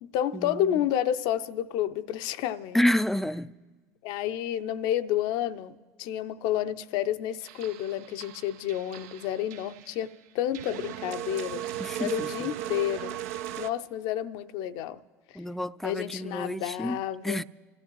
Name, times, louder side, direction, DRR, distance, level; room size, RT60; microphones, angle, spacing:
voice 1, 0.0-2.8 4.0-11.7 12.0-13.3 13.6-15.0 15.8-17.4, left 11 dB, 60° left, 0.6 m, -30 dB
voice 2, 2.7-3.5 11.8-12.5 15.4-17.4, left 1 dB, 5° left, 0.4 m, -29 dB
sound 1, 7.4-10.1 10.5-13.7, right 12 dB, 65° right, 0.5 m, -37 dB
27.5 x 14.5 x 3.1 m
figure-of-eight pair, 70°, 9 cm